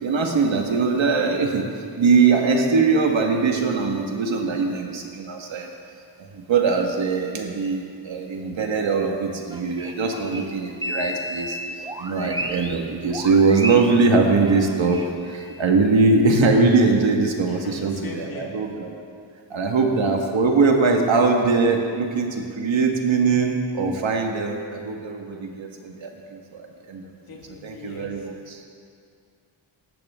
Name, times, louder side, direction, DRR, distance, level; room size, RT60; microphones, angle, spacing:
voice 1, 0.0-5.7 6.2-19.0 19.5-27.1 27.6-28.6, right 4 dB, 80° right, 2 dB, 1.8 m, -21 dB
sound 1, 9.5-12.8 13.1-15.6, equal, 10° right, 1.0 m, -33 dB
voice 2, 17.4-18.5 19.5-19.8 27.3-28.1, left 4 dB, 50° left, -1 dB, 2.2 m, -40 dB
19.0 x 14.0 x 3.7 m, 2.3 s
cardioid pair, 75°, 45 cm